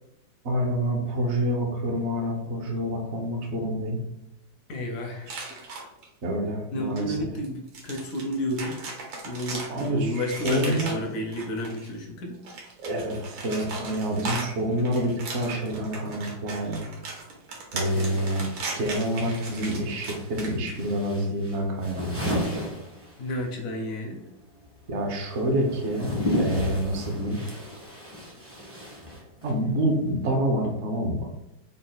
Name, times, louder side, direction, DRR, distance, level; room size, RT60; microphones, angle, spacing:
voice 1, 0.4-4.0 5.3-5.4 6.2-7.3 9.7-10.9 12.8-16.8 17.7-18.4 18.7-22.4 24.9-27.4 29.4-31.3, right 1 dB, 55° right, 1 dB, 0.7 m, -27 dB
voice 2, 4.7-5.6 6.7-8.8 9.2-12.4 17.9-18.2 23.2-24.2, left 1 dB, 70° left, 2 dB, 0.8 m, -31 dB
sound 1, 5.3-6.1 6.9-7.0 7.4-11.9 12.3-20.9, right 3 dB, 80° right, 1.7 m, -37 dB
sound 2, 17.7-23.5 23.8-29.7, equal, 20° right, 0.4 m, -34 dB
3.9 x 2.2 x 3.9 m, 0.89 s
omnidirectional pair, 2.1 m